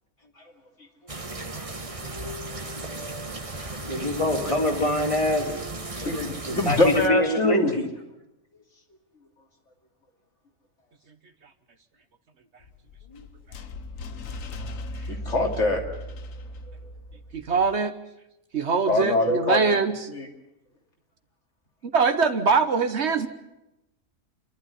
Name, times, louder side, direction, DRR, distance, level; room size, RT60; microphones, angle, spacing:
sound 1, 1.1-7.1, right 2 dB, 25° right, 1.4 m, -35 dB
voice 1, 2.3-2.7 3.6-3.8 5.9-6.2 6.5-7.7 15.1-15.8 16.7-16.8 18.8-19.8 20.1-20.3, left 2 dB, 60° left, 1 dB, 3.2 m, -24 dB
voice 2, 3.9-5.5 6.0-7.9 13.1-13.3, left 1 dB, 25° left, 3 dB, 2.9 m, -25 dB
sound 2, 12.6-17.8, left 1 dB, 80° left, 1.4 m, -38 dB
voice 3, 17.3-17.9 18.5-19.9 21.9-23.3, right 5 dB, 60° right, 9 dB, 1.4 m, -22 dB
28.5 x 12.0 x 9.9 m, 0.90 s
omnidirectional pair, 1.4 m